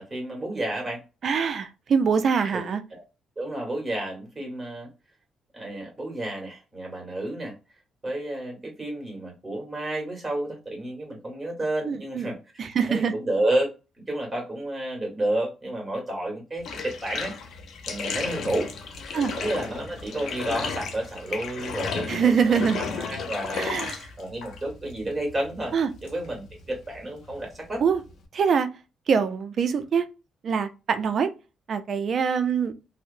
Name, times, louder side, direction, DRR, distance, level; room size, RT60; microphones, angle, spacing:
voice 1, 0.1-1.0 2.5-2.6 2.9-3.0 3.4-4.9 5.5-7.5 8.0-13.7 14.0-17.3 17.8-18.7 19.4-23.7 24.2-25.7 26.0-27.8, right 1 dB, 20° right, 1.5 m, -31 dB
voice 2, 1.2-2.8 11.9-12.3 12.6-13.1 19.1-19.3 22.1-22.8 23.5-24.0 25.7-25.9 27.8-28.0 28.3-28.7 29.1-30.1 30.4-31.3 31.7-32.7, right 6 dB, 55° right, 0.4 m, -24 dB
Bathtub (filling or washing), 16.6-28.3, left 5 dB, 65° left, 0.5 m, -35 dB
2.7 x 2.0 x 2.5 m
cardioid pair, 90°, 0 cm